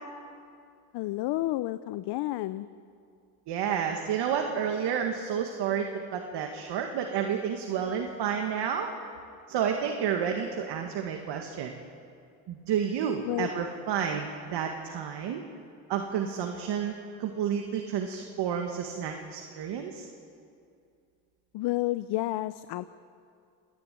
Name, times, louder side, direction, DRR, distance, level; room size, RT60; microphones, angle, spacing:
voice 1, 0.9-2.7 13.2-13.5 21.5-22.8, left 17 dB, 70° left, 14 dB, 0.7 m, -30 dB
voice 2, 3.5-8.9 9.5-11.8 12.5-15.4 15.9-16.9 17.2-20.1, right 8 dB, 70° right, 3 dB, 2.0 m, -30 dB
27.5 x 11.0 x 9.4 m, 2.4 s
supercardioid pair, 75°, 42 cm